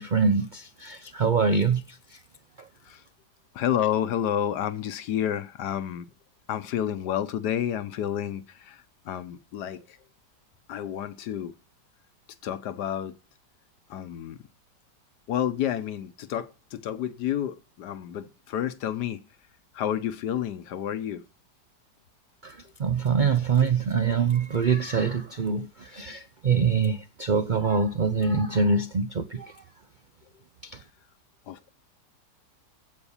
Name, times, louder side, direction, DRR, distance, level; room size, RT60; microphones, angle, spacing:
voice 1, 0.0-2.2 2.6-2.7 22.4-29.6 30.6-30.8, right 5 dB, 75° right, 0.4 m, -25 dB
voice 2, 3.5-6.1 6.5-8.8 9.1-9.8 10.7-11.5 12.4-13.1 13.9-14.4 15.3-19.2 19.7-21.2 31.5-31.7, left 10 dB, 70° left, 1.4 m, -30 dB
15.0 x 5.4 x 7.1 m
omnidirectional pair, 1.9 m